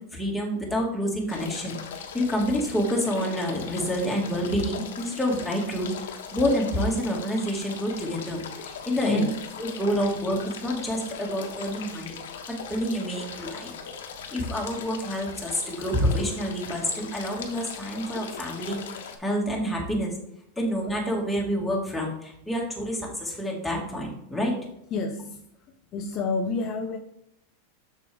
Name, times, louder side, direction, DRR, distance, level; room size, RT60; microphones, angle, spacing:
voice 1, 0.1-1.8 2.1-9.3 9.6-12.2 12.5-13.7 14.3-18.8 19.2-20.1 20.6-24.5, equal, 5° left, 1.9 m, -28 dB
sound 1, 1.3-19.2, left 6 dB, 90° left, 1.2 m, -39 dB
voice 2, 9.0-9.3 24.9-25.5 25.9-27.0, left 3 dB, 35° left, 0.6 m, -28 dB
6.8 x 6.5 x 3.4 m
supercardioid pair, 145°, 0 cm